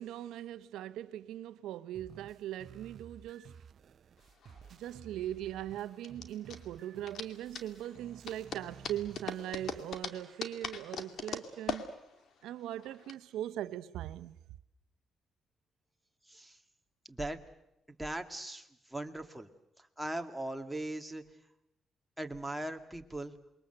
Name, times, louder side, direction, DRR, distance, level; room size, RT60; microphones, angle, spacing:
voice 1, 0.0-3.6 4.7-11.9 12.4-14.4, right 12 dB, 85° right, 0.9 m, -40 dB
sound 1, 1.9-9.9, right 7 dB, 55° right, 0.9 m, -54 dB
sound 2, 4.2-13.1, left 5 dB, 65° left, 2.4 m, -42 dB
voice 2, 16.3-16.6 17.1-17.4 18.0-19.5 19.8-21.2 22.2-23.3, right 1 dB, 5° right, 2.2 m, -39 dB
28.0 x 22.5 x 8.0 m
cardioid pair, 90°, 0 cm